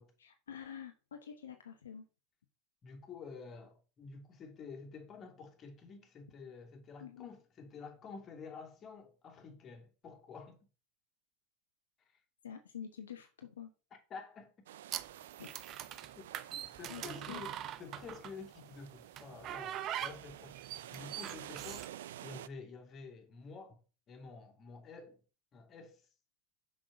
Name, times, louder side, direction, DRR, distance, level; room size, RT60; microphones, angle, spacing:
voice 1, 0.2-2.0 7.0-7.3 12.4-13.7 15.4-15.5 16.9-17.0 17.3-17.4, left 8 dB, 80° left, 1.1 m, -47 dB
voice 2, 2.8-10.6 12.0-12.2 14.1-14.5 16.1-20.6 20.9-21.9 22.2-23.8 24.1-25.2 25.5-26.1, left 5 dB, 30° left, 2.8 m, -50 dB
sound 1, 14.7-22.5, right 12 dB, 70° right, 0.4 m, -51 dB
sound 2, 14.9-18.5 19.2-21.9, right 11 dB, 40° right, 0.7 m, -42 dB
6.3 x 6.2 x 5.2 m
hypercardioid pair, 90°, 0 cm